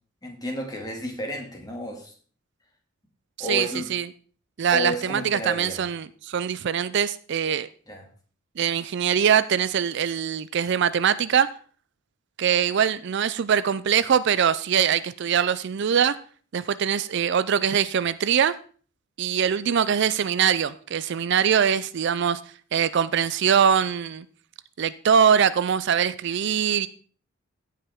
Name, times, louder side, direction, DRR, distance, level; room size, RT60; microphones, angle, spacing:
voice 1, 0.2-2.1 3.4-3.9 4.7-5.8 7.9-8.0, left 1 dB, 20° left, 2.3 m, -32 dB
voice 2, 3.5-4.0 4.6-7.7 8.6-11.5 12.4-16.2 16.5-18.5 19.2-22.4 22.7-24.2 24.8-26.9, right 8 dB, 60° right, 0.4 m, -22 dB
16.0 x 5.7 x 3.6 m
head